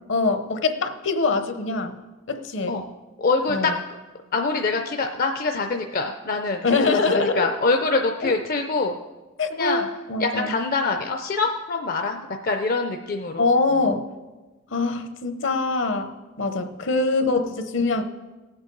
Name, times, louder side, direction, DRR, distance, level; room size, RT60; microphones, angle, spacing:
voice 1, 0.0-2.0 2.3-2.8 3.5-3.7 6.6-7.5 8.2-8.3 9.4-10.6 13.4-14.1 14.7-18.0, left 3 dB, 65° left, 8 dB, 0.9 m, -24 dB
voice 2, 3.2-3.7 4.3-8.9 9.5-9.9 10.2-13.5, left 3 dB, 45° left, 5 dB, 0.5 m, -24 dB
18.5 x 8.0 x 3.9 m, 1.2 s
head